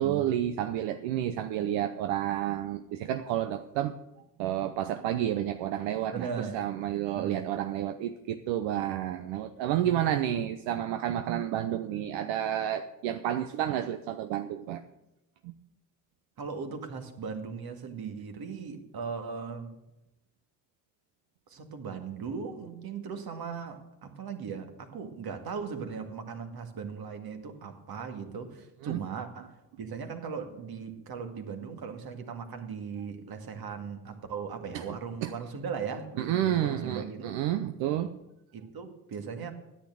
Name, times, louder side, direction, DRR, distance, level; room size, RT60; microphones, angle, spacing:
voice 1, 0.0-3.9 4.4-14.8 15.4-15.5 28.8-29.0 34.7-34.8 35.2-35.3 36.2-38.2, right 11 dB, 80° right, 9 dB, 0.8 m, -30 dB
voice 2, 6.1-6.6 7.1-7.5 9.8-10.4 16.4-19.8 21.5-37.4 38.5-39.5, right 6 dB, 55° right, 6 dB, 2.0 m, -38 dB
10.0 x 8.8 x 7.7 m, 0.93 s
supercardioid pair, 65°, 45 cm